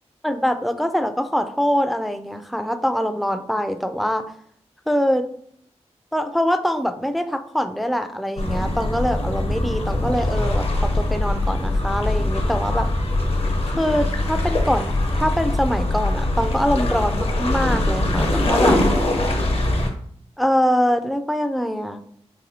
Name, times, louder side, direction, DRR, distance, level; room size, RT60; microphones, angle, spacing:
voice 1, 0.2-4.2 4.9-5.3 6.1-12.9 13.8-18.8 20.4-22.0, equal, ahead, 8 dB, 0.3 m, -23 dB
sound 1, 8.4-19.9, left 1 dB, 60° left, 0.7 m, -22 dB
4.1 x 2.6 x 2.8 m, 0.64 s
wide cardioid pair, 95°, 11 cm